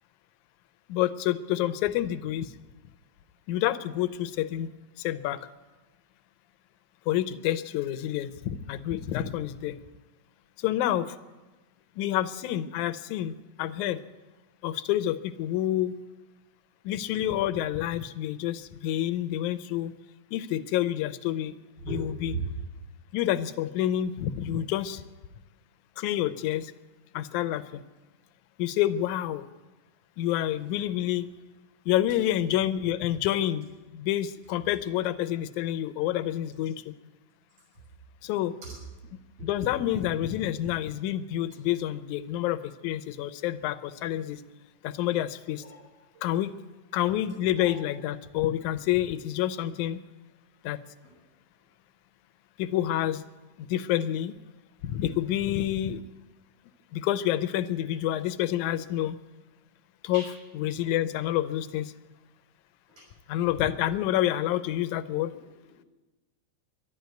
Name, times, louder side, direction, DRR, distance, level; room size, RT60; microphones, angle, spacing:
voice 1, 0.9-2.5 3.5-4.7 5.0-5.5 7.1-9.8 10.6-11.2 12.0-14.0 14.6-15.9 16.9-19.9 20.3-21.5 21.9-22.3 23.1-25.0 26.0-26.7 27.1-27.8 28.6-29.4 30.2-31.3 31.9-33.7 33.9-36.8 38.2-38.5 39.4-44.4 44.8-45.6 46.2-46.5 46.9-50.0 50.6-50.8 52.6-53.2 53.6-54.3 54.8-56.0 56.9-59.2 60.0-60.2 60.5-61.9 63.3-65.3, left 12 dB, 80° left, 11 dB, 2.0 m, -28 dB
voice 2, 21.8-22.0 22.2-22.5 38.6-38.8 39.4-39.5 45.5-45.8 46.1-46.2 47.6-47.7 51.0-51.1 60.1-60.3 61.0-61.2 62.9-63.1 65.7-65.9, right 4 dB, 55° right, -3 dB, 7.5 m, -38 dB
12.0 x 12.0 x 9.3 m, 1.2 s
omnidirectional pair, 3.6 m